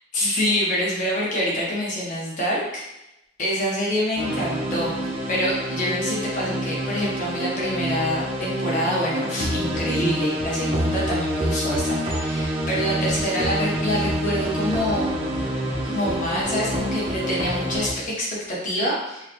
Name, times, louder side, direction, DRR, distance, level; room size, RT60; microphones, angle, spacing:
voice 1, 0.1-2.8 3.4-15.6 15.8-19.3, equal, 40° left, -5 dB, 1.1 m, -26 dB
sound 1, 4.2-17.9, equal, 30° right, 0.6 m, -27 dB
4.6 x 2.3 x 3.0 m, 0.88 s
head